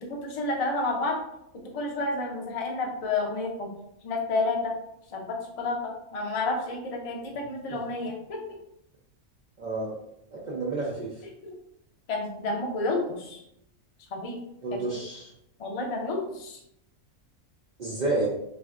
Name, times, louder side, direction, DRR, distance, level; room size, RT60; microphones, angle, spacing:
voice 1, 0.0-1.2 1.6-3.7 4.0-4.8 5.1-8.4 11.4-11.5 12.1-13.4 14.1-14.4 14.7-14.8 15.6-16.6, left 2 dB, 65° left, 1 dB, 0.3 m, -30 dB
voice 2, 9.6-10.0 10.3-11.1 14.6-15.3 17.8-18.3, right 2 dB, 70° right, -4 dB, 0.4 m, -30 dB
3.3 x 2.5 x 2.4 m, 0.79 s
omnidirectional pair, 1.4 m